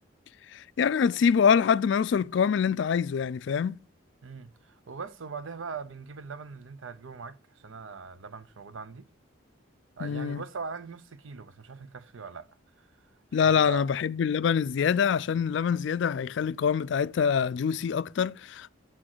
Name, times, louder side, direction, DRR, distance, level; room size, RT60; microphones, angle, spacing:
voice 1, 0.5-3.8 10.0-10.4 13.3-18.7, left 7 dB, 60° left, 0.3 m, -25 dB
voice 2, 4.2-9.1 10.0-13.1 13.4-13.8, right 5 dB, 75° right, 0.7 m, -41 dB
8.7 x 6.3 x 4.5 m
head